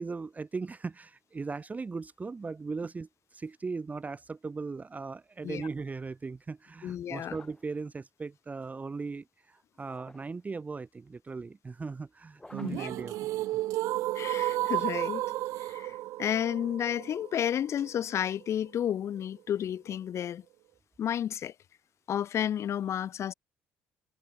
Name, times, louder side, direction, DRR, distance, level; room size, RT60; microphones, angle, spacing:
voice 1, 0.0-13.3, right 4 dB, 25° right, 0.8 m, -38 dB
voice 2, 6.8-7.4 12.6-12.9 14.1-15.2 15.6-20.4 21.0-21.5 22.1-23.3, left 10 dB, 50° left, 0.6 m, -31 dB
sound 1, 7.2-7.8 9.8-10.4 12.3-13.0 14.4-15.2, left 1 dB, 10° left, 4.5 m, -54 dB
sound 2, 12.5-18.5, right 16 dB, 65° right, 0.4 m, -33 dB
hypercardioid pair, 60°, 6 cm